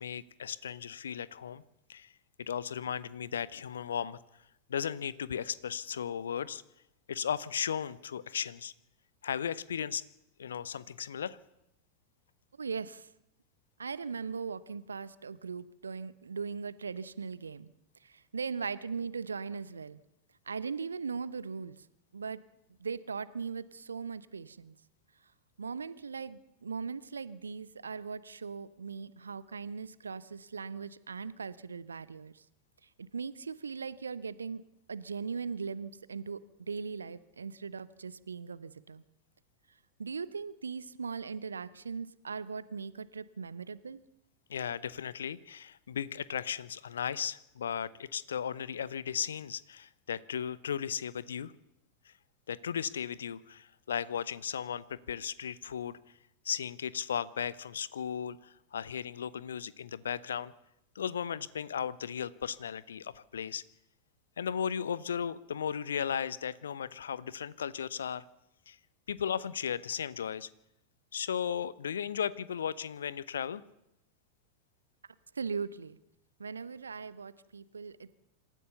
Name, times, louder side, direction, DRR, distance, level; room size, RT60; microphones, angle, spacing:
voice 1, 0.0-1.6 1.9-2.1 2.4-4.2 4.7-6.6 7.1-8.7 9.2-10.0 10.4-11.4 44.5-51.5 52.5-56.0 56.4-60.5 60.9-63.6 64.4-68.2 68.7-68.8 69.1-70.5 71.1-73.6, left 8 dB, 65° left, 19 dB, 0.8 m, -36 dB
voice 2, 12.6-13.1 13.8-17.7 18.0-20.0 20.5-21.9 22.1-22.4 22.8-24.8 25.6-32.4 32.8-34.6 34.9-39.0 40.0-44.0 75.3-76.0 76.4-78.1, right 5 dB, 75° right, 18 dB, 0.8 m, -39 dB
26.5 x 14.0 x 7.0 m, 0.84 s
figure-of-eight pair, 90°, 0 cm